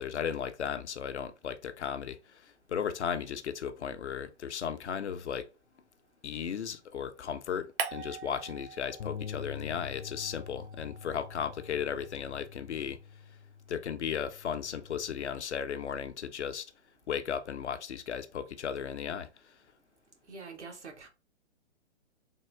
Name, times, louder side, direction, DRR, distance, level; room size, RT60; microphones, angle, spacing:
voice 1, 0.0-5.5 6.2-13.0 13.7-16.7 17.1-19.3, left 7 dB, 75° left, 0.6 m, -35 dB
sound 1, 7.8-9.5 9.8-12.2, right 6 dB, 50° right, 0.8 m, -42 dB
Bass guitar, 9.0-15.2, left 7 dB, 40° left, 0.5 m, -46 dB
voice 2, 20.3-21.1, right 4 dB, 80° right, 1.4 m, -45 dB
3.6 x 2.3 x 3.3 m
figure-of-eight pair, 125°, 34 cm